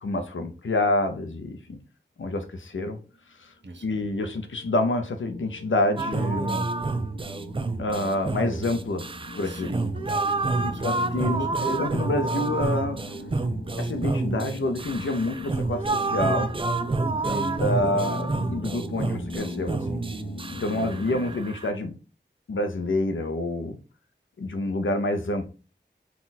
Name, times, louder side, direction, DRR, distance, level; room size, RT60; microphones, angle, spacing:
voice 1, 0.0-1.8 2.2-3.0 3.4-3.5 3.8-6.7 7.8-9.1 9.4-9.7 10.6-13.0 13.8-16.5 17.6-20.0 20.6-21.9 22.5-23.8 24.4-25.4, left 2 dB, 90° left, 0.6 m, -27 dB
voice 2, 3.6-4.1 9.4-11.8 17.2-18.0 20.8-21.4, right 1 dB, 65° right, 1.0 m, -40 dB
sound 1, 3.7-21.4, left 2 dB, 45° left, 0.6 m, -41 dB
sound 2, 6.0-21.7, right 3 dB, 25° right, 0.4 m, -29 dB
4.1 x 2.3 x 4.0 m
wide cardioid pair, 55°, 19 cm